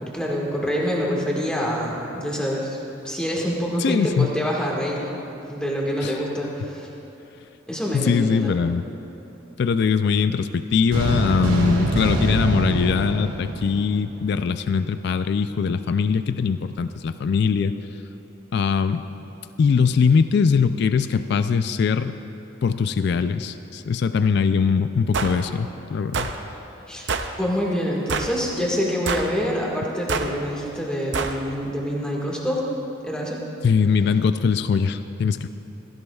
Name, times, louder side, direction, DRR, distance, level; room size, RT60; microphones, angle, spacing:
voice 1, 0.0-2.8 3.0-5.2 5.5-6.9 7.7-8.7 26.9-27.0 27.4-32.6 33.0-33.4, equal, 5° left, -4 dB, 1.7 m, -26 dB
voice 2, 3.8-4.3 6.0-6.1 7.9-8.8 9.6-17.7 18.5-19.0 19.6-22.1 22.6-26.3 33.6-35.5, left 5 dB, 55° left, 11 dB, 0.3 m, -21 dB
sound 1, 10.9-14.4, right 1 dB, 80° right, 2.3 m, -24 dB
sound 2, 25.1-25.4 26.1-26.4 27.1-27.3 28.1-28.4 29.1-29.3 30.1-30.3 31.1-31.4, right 4 dB, 60° right, 0.6 m, -26 dB
16.0 x 16.0 x 2.3 m, 3.0 s
head